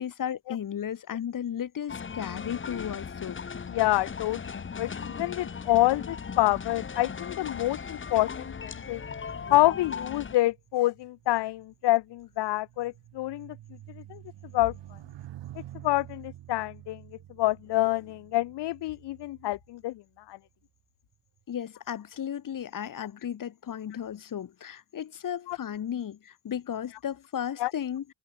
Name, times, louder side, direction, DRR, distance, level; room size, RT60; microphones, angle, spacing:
voice 1, 0.0-3.4 21.5-28.1, left 9 dB, 45° left, 5.5 m, -35 dB
sound 1, 1.9-10.4, left 6 dB, 25° left, 2.6 m, -38 dB
voice 2, 3.7-4.4 4.8-9.0 9.5-13.6 14.0-14.2 14.5-14.7 15.8-17.0 17.4-20.0 20.3-20.4 25.5-25.6 27.6-27.7, left 16 dB, 65° left, 0.9 m, -27 dB
sound 2, 8.8-20.4 21.1-21.4, right 13 dB, 75° right, 5.3 m, -49 dB
open air
cardioid pair, 165°, 44 cm